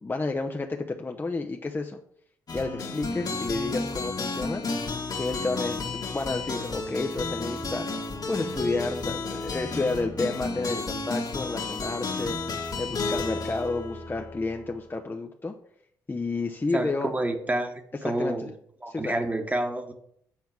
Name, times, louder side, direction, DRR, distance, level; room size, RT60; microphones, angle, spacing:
voice 1, 0.0-2.0 2.5-4.6 5.2-7.9 8.3-15.5 16.1-17.1 18.0-18.5 18.9-19.2, left 3 dB, 25° left, 3 dB, 0.8 m, -31 dB
sound 1, 2.5-14.8, left 3 dB, 45° left, 1.6 m, -32 dB
voice 2, 16.7-17.7 18.0-18.5 18.8-19.9, right 1 dB, 15° right, 5 dB, 1.4 m, -28 dB
7.5 x 4.5 x 5.9 m, 0.68 s
hypercardioid pair, 45°, 9 cm